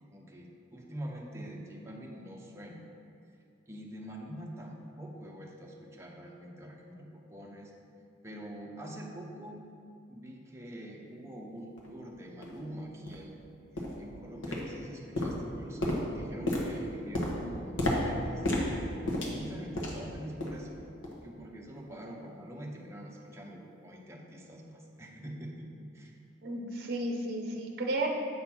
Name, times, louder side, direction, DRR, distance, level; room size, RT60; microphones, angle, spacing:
voice 1, 0.0-2.8 3.7-7.7 8.2-9.6 10.1-13.4 13.7-18.8 19.2-20.8 21.2-25.7 25.9-26.2, right 1 dB, 15° right, -2 dB, 0.8 m, -44 dB
sound 1, 11.8-11.9 12.4-12.5 13.1-13.2 13.8-14.1 14.4-14.9 15.2-20.1 20.4-20.7 21.0-21.2 21.8-21.9, left 1 dB, 90° left, 1.2 m, -32 dB
voice 2, 26.4-28.1, right 2 dB, 55° right, 1 dB, 0.7 m, -33 dB
7.6 x 4.1 x 5.9 m, 2.4 s
head